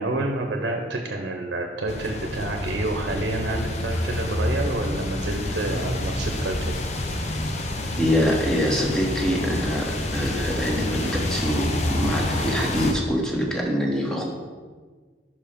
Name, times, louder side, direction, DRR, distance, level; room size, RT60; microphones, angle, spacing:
voice 1, 0.0-6.8, right 2 dB, 70° right, 2 dB, 0.7 m, -28 dB
sound 1, 1.9-12.9, left 1 dB, 40° left, 0.6 m, -28 dB
voice 2, 8.0-14.2, equal, 5° left, -1 dB, 1.0 m, -24 dB
5.5 x 4.7 x 5.0 m, 1.5 s
head